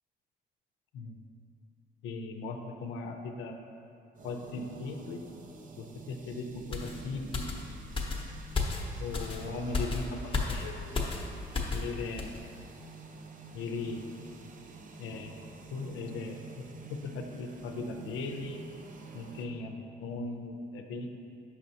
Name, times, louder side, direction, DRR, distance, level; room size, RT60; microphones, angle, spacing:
voice 1, 2.0-3.6 4.2-5.2 5.8-7.4 9.0-10.9 11.7-12.4 13.5-14.1 15.0-15.4 15.7-16.6 16.9-18.6 19.1-21.2, left 3 dB, 85° left, 4 dB, 0.5 m, -38 dB
sound 1, 4.1-19.5, right 3 dB, 40° right, 0.5 m, -49 dB
sound 2, 6.7-11.9 12.2-12.4, left 3 dB, 25° left, 0.8 m, -34 dB
6.1 x 5.7 x 2.8 m, 2.4 s
cardioid pair, 90°, 20 cm